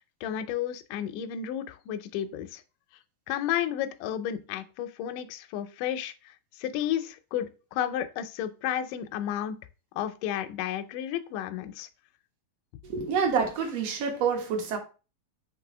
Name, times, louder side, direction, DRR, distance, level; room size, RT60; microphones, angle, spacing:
voice 1, 0.2-2.6 3.3-9.6 10.0-11.9 13.0-13.1, left 10 dB, 80° left, 2.0 m, -32 dB
voice 2, 12.9-14.8, right 6 dB, 55° right, 1.9 m, -27 dB
6.1 x 3.2 x 4.9 m
omnidirectional pair, 4.1 m